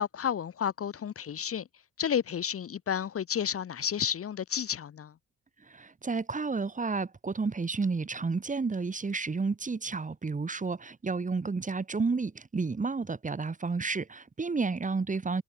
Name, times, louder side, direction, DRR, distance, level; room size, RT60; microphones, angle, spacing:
voice 1, 0.0-1.7 2.0-5.1, left 8 dB, 50° left, 1.4 m, -31 dB
voice 2, 5.7-15.4, right 4 dB, 25° right, 2.4 m, -31 dB
cardioid pair, 90°, 30 cm